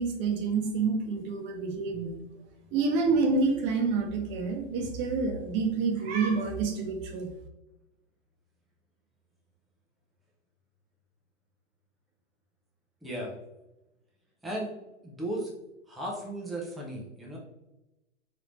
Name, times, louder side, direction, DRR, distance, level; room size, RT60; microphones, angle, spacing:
voice 1, 0.0-2.2 2.7-7.3, right 4 dB, 30° right, 4 dB, 0.7 m, -28 dB
voice 2, 13.0-13.3 14.4-14.7 15.0-15.5 15.9-17.4, right 1 dB, ahead, -3 dB, 0.4 m, -35 dB
3.7 x 3.4 x 3.0 m, 0.96 s
hypercardioid pair, 125°, 37 cm